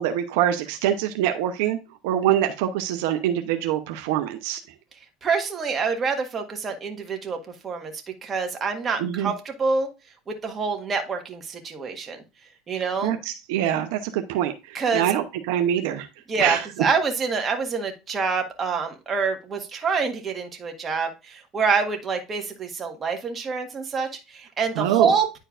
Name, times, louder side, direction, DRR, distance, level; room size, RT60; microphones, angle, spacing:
voice 1, 0.0-1.8 2.0-4.6 9.0-9.3 13.0-16.1 16.4-16.6 24.8-25.1, right 11 dB, 80° right, 7 dB, 0.7 m, -24 dB
voice 2, 5.2-7.4 7.6-7.9 8.2-9.9 10.3-12.2 12.7-13.2 14.7-15.1 16.3-25.4, right 5 dB, 30° right, 4 dB, 1.6 m, -26 dB
10.0 x 4.4 x 2.5 m, 0.28 s
supercardioid pair, 120°, 0 cm